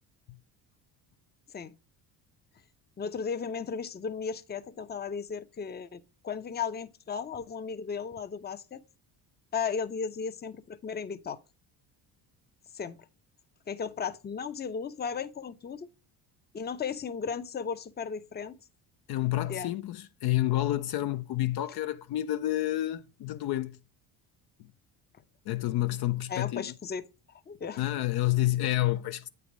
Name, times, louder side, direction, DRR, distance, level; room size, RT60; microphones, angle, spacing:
voice 1, 3.0-8.8 9.5-11.4 12.7-13.0 13.7-15.9 16.5-18.6 19.5-19.7 26.3-27.0 27.5-27.8, left 6 dB, 20° left, 0.6 m, -35 dB
voice 2, 19.1-23.8 24.6-24.7 25.5-26.7 27.8-29.3, left 15 dB, 60° left, 0.6 m, -29 dB
8.4 x 3.5 x 6.1 m
supercardioid pair, 70°, 45 cm